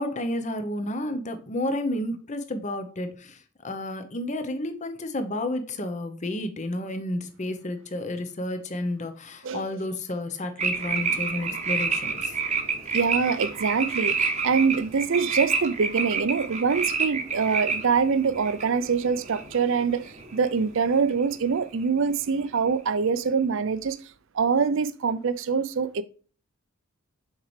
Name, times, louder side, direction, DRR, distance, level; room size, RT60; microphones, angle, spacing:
voice 1, 0.0-12.3, left 1 dB, 35° left, 0.8 m, -31 dB
sound 1, 10.6-20.8 21.1-21.5, right 5 dB, 30° right, 0.9 m, -29 dB
voice 2, 12.9-24.0 24.3-26.0, right 5 dB, 60° right, 0.5 m, -24 dB
6.6 x 4.5 x 3.2 m
head